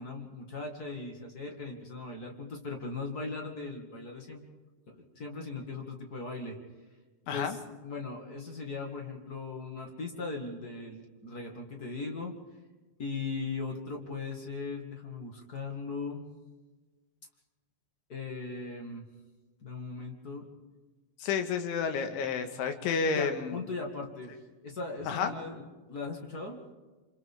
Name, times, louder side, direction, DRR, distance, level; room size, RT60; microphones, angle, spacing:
voice 1, 0.0-4.4 4.9-6.6 7.3-12.3 13.0-16.2 18.1-19.1 19.6-20.5 23.1-24.4 24.6-26.6, left 3 dB, 45° left, 1 dB, 1.1 m, -39 dB
voice 2, 7.3-7.6 21.2-23.7 25.1-25.3, left 6 dB, 85° left, 6 dB, 3.9 m, -30 dB
28.5 x 26.5 x 3.7 m, 1.3 s
omnidirectional pair, 5.3 m